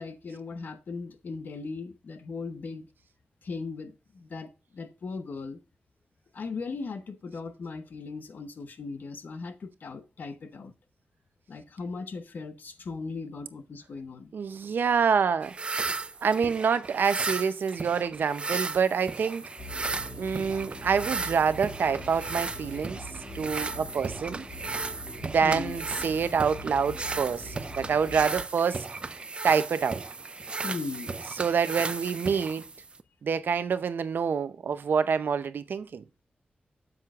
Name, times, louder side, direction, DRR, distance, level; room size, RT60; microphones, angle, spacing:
voice 1, 0.0-2.9 3.4-5.6 6.3-10.7 11.5-14.3 25.4-25.7 30.6-31.2, left 4 dB, 65° left, 0.9 m, -38 dB
voice 2, 14.3-15.5 16.2-19.5 20.2-23.0 23.3-24.5 25.2-28.8 29.4-30.0 31.4-32.6 33.2-36.0, right 6 dB, 90° right, 0.6 m, -26 dB
sound 1, 15.4-33.0, right 3 dB, 30° right, 0.4 m, -35 dB
sound 2, 19.6-28.4, left 1 dB, 35° left, 1.6 m, -43 dB
7.7 x 7.3 x 2.5 m
wide cardioid pair, 165°, 3 cm